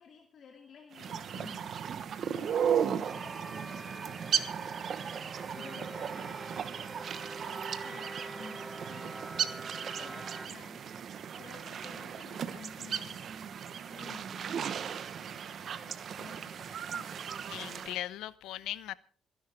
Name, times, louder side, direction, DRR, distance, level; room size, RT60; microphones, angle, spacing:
voice 1, 0.0-3.7 5.5-6.8 7.4-9.4 10.0-10.8 11.4-13.2 13.9-14.6 15.2-17.2, left 4 dB, 55° left, 2.5 m, -52 dB
sound 1, 0.9-18.0, right 8 dB, 60° right, 1.1 m, -36 dB
sound 2, 3.1-10.5, right 2 dB, 20° right, 1.0 m, -45 dB
voice 2, 17.5-18.9, left 13 dB, 80° left, 0.7 m, -38 dB
28.0 x 11.0 x 3.5 m
supercardioid pair, 75°, 0 cm